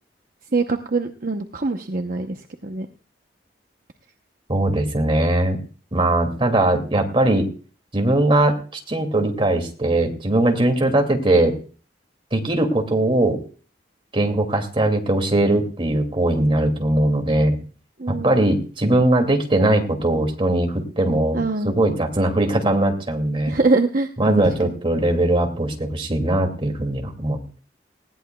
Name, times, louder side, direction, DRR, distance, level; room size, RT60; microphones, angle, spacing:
voice 1, 0.5-2.9 18.0-18.5 21.3-21.7 23.5-24.5, right 3 dB, 50° right, 5 dB, 0.9 m, -23 dB
voice 2, 4.5-5.6 5.9-7.5 7.9-8.6 8.9-11.5 12.3-13.4 14.1-17.6 18.1-23.6 24.2-27.6, right 1 dB, 30° right, 5 dB, 2.5 m, -20 dB
19.5 x 16.5 x 2.3 m, 0.39 s
head